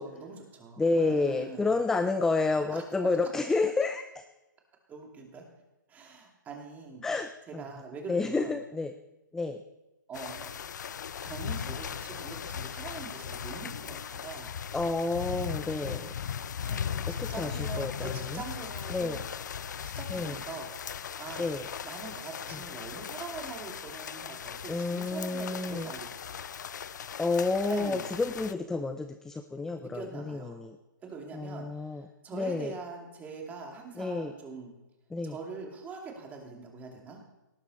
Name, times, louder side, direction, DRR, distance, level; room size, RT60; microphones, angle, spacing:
voice 1, 0.0-1.8 2.7-2.8 4.9-5.4 5.9-7.0 7.5-8.5 10.1-10.6 11.2-14.5 15.8-19.2 19.8-21.5 21.8-26.4 27.7-28.1 29.8-30.6 31.0-34.7 35.2-37.2, right 4 dB, 15° right, 1 dB, 2.6 m, -43 dB
voice 2, 0.8-4.2 7.0-7.6 8.1-8.9 9.3-9.6 14.7-16.1 17.2-17.9 18.3-18.4 18.9-19.2 20.1-20.4 21.4-21.7 22.5-22.6 24.7-25.9 27.2-30.8 31.3-32.0 32.3-32.7 34.0-34.3 35.1-35.3, left 3 dB, 5° left, 9 dB, 0.5 m, -30 dB
sound 1, 10.1-28.5, left 8 dB, 60° left, 0.7 m, -38 dB
18.5 x 9.8 x 4.2 m, 0.99 s
figure-of-eight pair, 135°, 11 cm